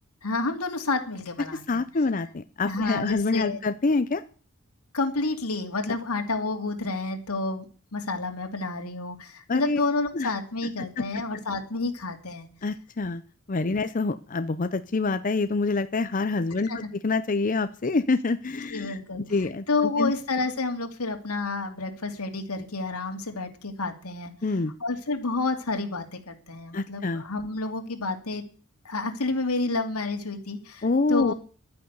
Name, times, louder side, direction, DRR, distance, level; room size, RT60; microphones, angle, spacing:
voice 1, 0.2-1.8 2.6-3.6 4.9-7.6 7.9-12.5 16.7-16.9 18.7-19.2 19.7-24.3 24.8-28.4 28.8-31.3, left 3 dB, 90° left, 4 dB, 2.7 m, -29 dB
voice 2, 1.7-4.2 9.5-9.8 10.1-10.3 10.8-11.1 12.6-13.2 13.5-16.7 17.0-19.7 20.0-20.1 24.4-24.7 26.7-27.2 30.8-31.3, left 3 dB, 35° left, 10 dB, 0.6 m, -26 dB
12.0 x 9.5 x 8.1 m, 0.40 s
head